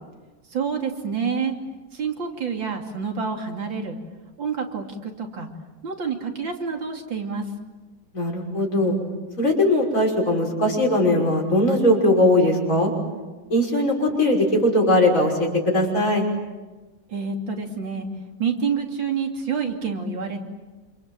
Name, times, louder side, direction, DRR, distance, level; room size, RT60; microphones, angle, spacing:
voice 1, 0.5-1.5 1.9-4.0 4.4-5.5 5.8-7.5 17.1-18.1 18.4-20.4, right 6 dB, 85° right, 3 dB, 3.6 m, -28 dB
voice 2, 8.1-9.0 9.4-12.9 13.5-16.2, left 1 dB, 45° left, -1 dB, 6.3 m, -20 dB
28.0 x 27.5 x 7.7 m, 1.2 s
omnidirectional pair, 2.0 m